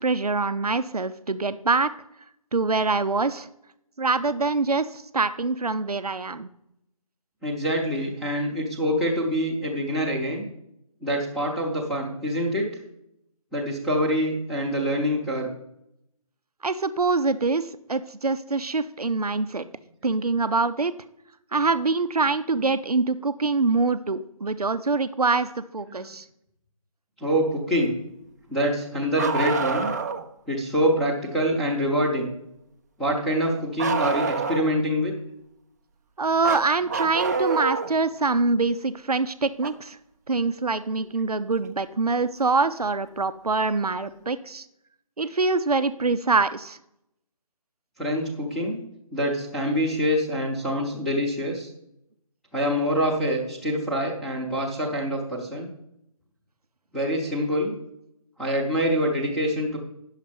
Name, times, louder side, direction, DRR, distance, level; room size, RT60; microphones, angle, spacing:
voice 1, 0.0-1.9 2.5-3.5 4.0-6.5 16.6-19.6 20.0-20.9 21.5-26.2 36.2-40.0 40.3-44.7 45.2-46.8, right 3 dB, 85° right, 12 dB, 0.6 m, -24 dB
voice 2, 7.4-10.4 11.0-12.7 13.5-15.5 25.9-26.1 27.2-27.9 28.5-29.9 30.5-32.3 33.0-35.1 48.0-48.8 49.1-51.7 52.5-55.7 56.9-57.7 58.4-59.8, equal, ahead, -4 dB, 0.8 m, -25 dB
Bark, 29.2-30.3 33.8-34.8 36.4-37.9 39.6-39.7 41.6-41.7 42.8-42.9, right 4 dB, 30° right, 0.5 m, -27 dB
9.5 x 6.5 x 5.2 m, 0.80 s
figure-of-eight pair, 150°, 19 cm